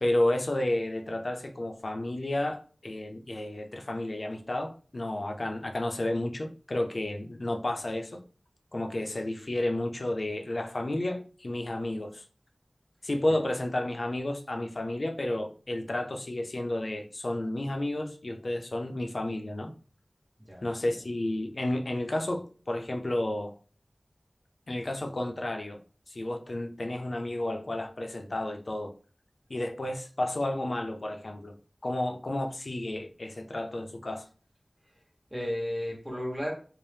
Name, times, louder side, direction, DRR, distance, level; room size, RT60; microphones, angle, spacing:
voice 1, 0.0-8.2 8.7-12.2 13.0-19.7 20.6-23.5 24.7-25.8 26.1-28.9 29.5-31.5 31.8-34.2, left 1 dB, 70° left, 0.4 m, -31 dB
voice 2, 35.3-36.5, equal, 10° right, 1.0 m, -34 dB
2.7 x 2.0 x 3.3 m
wide cardioid pair, 40°, 0 cm